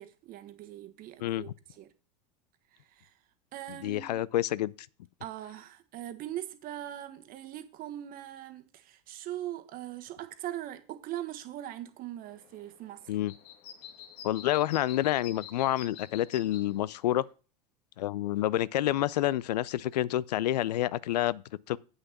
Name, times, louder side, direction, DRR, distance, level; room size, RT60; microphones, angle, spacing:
voice 1, 0.0-1.9 3.0-3.1 3.5-4.2 5.2-13.1, right 13 dB, 45° right, 1.3 m, -41 dB
voice 2, 1.2-1.5 3.7-4.7 13.1-13.3 14.2-17.3 18.0-21.8, left 14 dB, 80° left, 0.5 m, -28 dB
sound 1, 12.2-17.3, left 8 dB, 55° left, 1.7 m, -49 dB
8.2 x 6.4 x 5.9 m
hypercardioid pair, 95°, 21 cm